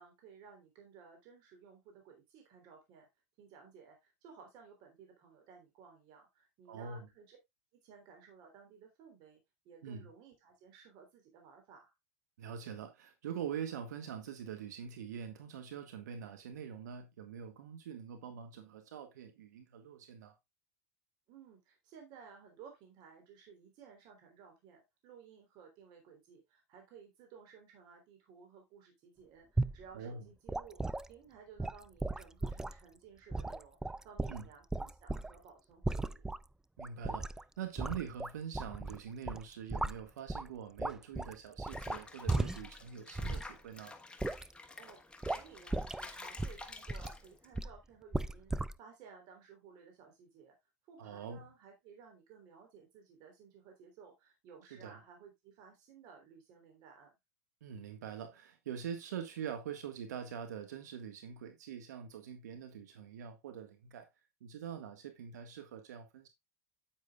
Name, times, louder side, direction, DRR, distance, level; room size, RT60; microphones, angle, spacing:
voice 1, 0.0-3.1 3.4-7.4 7.8-11.9 21.3-36.2 44.7-48.5 48.8-50.6 50.9-57.1, right 6 dB, 50° right, 3.6 m, -57 dB
voice 2, 6.7-7.1 9.8-10.1 12.4-20.3 29.9-30.2 34.3-34.5 36.8-44.0 51.0-51.4 54.7-55.0 57.6-64.1 64.4-66.3, right 8 dB, 80° right, 1.7 m, -44 dB
sound 1, 29.6-29.8 30.5-31.1 31.6-32.8 33.3-35.4 35.8-36.4 36.8-37.4 37.8-39.0 39.3-40.5 40.8-42.8 43.2-43.5 44.2-44.5 45.2-45.4 45.7-46.1 46.4-47.2 47.5-47.8 48.1-48.7, right 2 dB, 5° right, 0.4 m, -36 dB
Water / Bathtub (filling or washing), 41.7-47.6, left 3 dB, 10° left, 1.4 m, -49 dB
9.1 x 8.9 x 2.4 m
hypercardioid pair, 95°, 9 cm